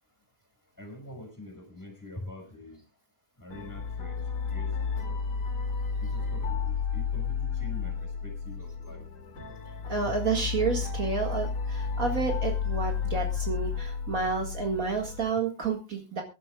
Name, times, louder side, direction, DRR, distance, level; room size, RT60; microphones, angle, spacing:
voice 1, 0.8-2.8 3.4-4.2 4.4-5.2 6.0-9.0 13.0-13.1, left 1 dB, 10° left, 3 dB, 6.0 m, -45 dB
sound 1, 3.5-15.2, left 6 dB, 80° left, 2.8 m, -32 dB
voice 2, 9.9-16.2, right 4 dB, 55° right, 2 dB, 2.4 m, -30 dB
24.0 x 11.5 x 2.4 m, 0.29 s
omnidirectional pair, 1.7 m